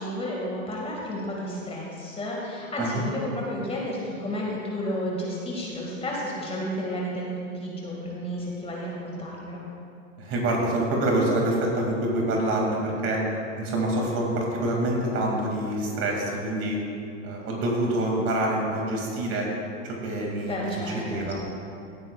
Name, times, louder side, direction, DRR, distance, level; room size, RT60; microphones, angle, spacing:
voice 1, 0.0-7.3 7.6-9.6 20.5-21.4, equal, 15° left, -3 dB, 2.1 m, -32 dB
voice 2, 10.2-13.2 13.6-16.8 17.2-19.5 19.8-21.4, right 1 dB, 35° right, -1 dB, 2.5 m, -26 dB
16.0 x 9.4 x 2.4 m, 2.5 s
hypercardioid pair, 105°, 38 cm